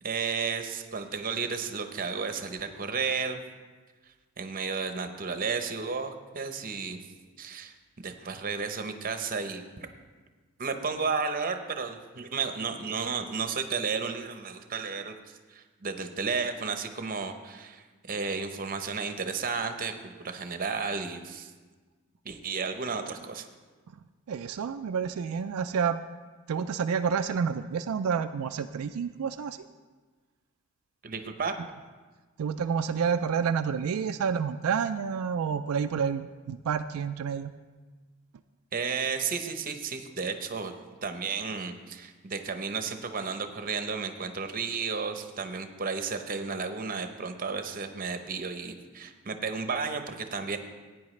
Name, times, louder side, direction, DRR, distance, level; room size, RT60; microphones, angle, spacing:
voice 1, 0.0-3.4 4.4-7.0 7.4-7.7 8.0-9.6 10.6-15.1 15.5-21.5 22.2-23.5 31.0-31.6 38.7-40.7 41.0-50.6, right 5 dB, 40° right, 7 dB, 0.7 m, -33 dB
voice 2, 24.3-26.0 26.5-29.6 32.4-37.5, right 6 dB, 85° right, 8 dB, 0.4 m, -29 dB
15.5 x 9.3 x 3.2 m, 1.3 s
head